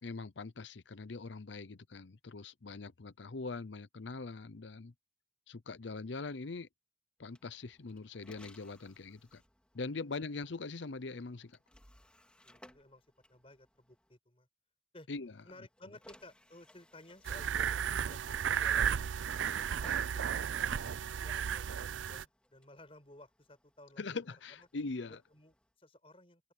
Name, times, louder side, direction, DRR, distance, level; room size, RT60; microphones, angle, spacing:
voice 1, 0.0-4.9 5.5-6.7 7.2-9.4 9.7-11.6 15.1-15.3 24.0-25.2, left 3 dB, 75° left, 0.7 m, -42 dB
sound 1, 7.2-14.2 15.2-25.7, left 1 dB, 5° left, 4.2 m, -64 dB
voice 2, 12.4-14.5 14.9-15.1 15.4-19.7 20.0-20.6 21.2-24.2 24.6-24.7 25.1-26.4, left 1 dB, 30° left, 5.9 m, -56 dB
sound 2, 17.2-22.2, right 8 dB, 90° right, 0.4 m, -34 dB
open air
head